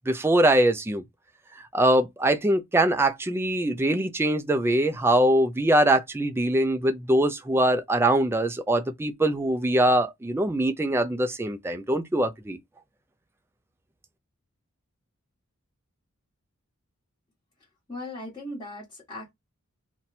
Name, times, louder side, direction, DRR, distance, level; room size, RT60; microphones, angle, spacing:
voice 1, 0.1-1.0 1.7-12.6, right 1 dB, 10° right, 0.3 m, -23 dB
voice 2, 17.9-19.3, left 1 dB, 20° left, 1.3 m, -38 dB
2.6 x 2.2 x 4.0 m
head